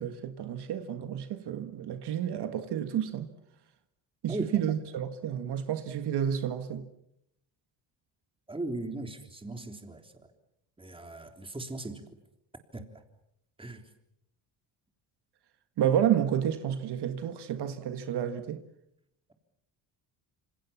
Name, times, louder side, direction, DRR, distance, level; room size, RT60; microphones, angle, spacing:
voice 1, 0.0-3.3 4.2-6.8 15.8-18.6, right 9 dB, 65° right, 1.8 m, -30 dB
voice 2, 4.3-4.7 8.5-10.3 10.8-12.0 12.7-13.0 13.6-13.9, right 2 dB, 10° right, 3.5 m, -38 dB
27.0 x 26.5 x 7.3 m
cardioid pair, 120°, 42 cm